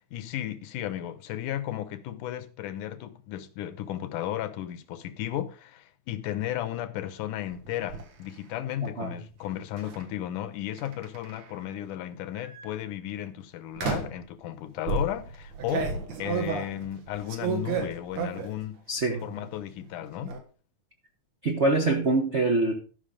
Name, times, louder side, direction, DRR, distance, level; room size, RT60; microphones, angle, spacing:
voice 1, 0.0-15.9 16.2-18.8 19.2-20.4, left 12 dB, 85° left, 2.4 m, -34 dB
sound 1, 7.5-8.0 9.8-10.0 10.8-11.6 12.4-12.7 13.8-14.3 14.9-18.6 19.0-19.5 19.8-20.4, right 5 dB, 65° right, 2.7 m, -32 dB
voice 2, 18.9-19.3 21.4-22.7, right 2 dB, 85° right, 0.6 m, -24 dB
13.0 x 6.1 x 5.1 m
omnidirectional pair, 3.5 m